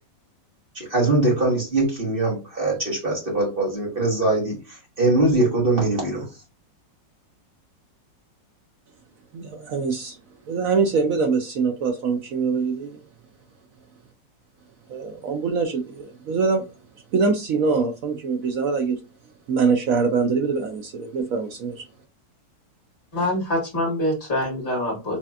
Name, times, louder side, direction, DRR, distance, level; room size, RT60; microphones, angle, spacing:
voice 1, 0.7-6.3, right 2 dB, 30° right, -2 dB, 1.6 m, -22 dB
voice 2, 9.3-10.2 10.5-13.0 14.9-16.7 17.1-19.0 19.5-21.9, right 4 dB, 65° right, 4 dB, 0.9 m, -23 dB
voice 3, 23.1-25.2, left 1 dB, 30° left, -2 dB, 2.0 m, -25 dB
4.2 x 3.2 x 2.4 m, 0.29 s
omnidirectional pair, 1.9 m